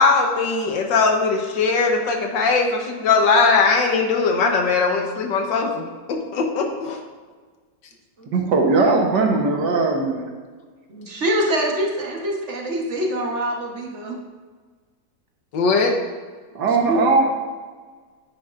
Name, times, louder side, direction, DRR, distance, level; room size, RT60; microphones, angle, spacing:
voice 1, 0.0-5.8 6.1-7.0 15.5-16.0, left 4 dB, 85° left, 3 dB, 1.7 m, -19 dB
voice 2, 8.3-10.3 16.6-17.3, right 3 dB, 70° right, 2 dB, 1.7 m, -19 dB
voice 3, 10.9-14.2 16.8-17.1, equal, 45° right, 0 dB, 1.3 m, -24 dB
9.9 x 9.2 x 2.5 m, 1.5 s
omnidirectional pair, 1.9 m